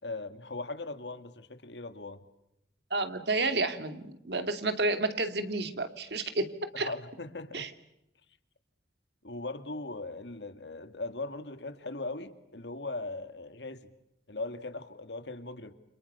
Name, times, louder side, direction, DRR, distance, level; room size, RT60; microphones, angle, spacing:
voice 1, 0.0-2.2 6.7-7.7 9.2-13.9 14.3-15.7, left 2 dB, 85° left, 9 dB, 2.4 m, -39 dB
voice 2, 2.9-6.9 7.5-7.7, right 2 dB, 75° right, 9 dB, 2.7 m, -31 dB
30.0 x 27.5 x 7.0 m, 0.85 s
head